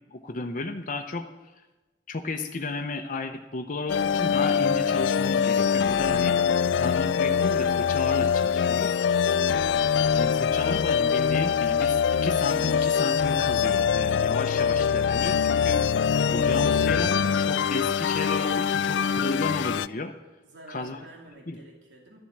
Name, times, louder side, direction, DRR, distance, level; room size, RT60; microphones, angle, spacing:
voice 1, 0.1-1.3 2.1-6.4 6.7-9.0 10.1-15.8 16.3-20.1 20.7-21.0 21.5-21.6, left 3 dB, 50° left, 4 dB, 0.7 m, -33 dB
sound 1, 3.9-19.9, left 7 dB, 80° left, 0.4 m, -23 dB
voice 2, 9.2-9.8 20.4-22.2, right 2 dB, 85° right, 0 dB, 2.4 m, -49 dB
12.5 x 7.3 x 9.9 m, 1.1 s
head